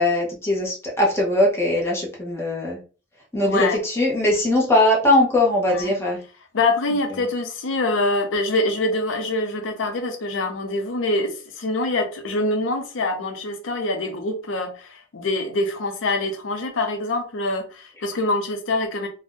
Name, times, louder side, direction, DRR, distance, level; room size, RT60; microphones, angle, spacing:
voice 1, 0.0-2.8 3.3-6.2, left 1 dB, 15° left, 0.8 m, -20 dB
voice 2, 3.4-3.8 5.7-5.9 6.5-19.1, left 2 dB, 85° left, 0.5 m, -25 dB
2.5 x 2.1 x 3.5 m
head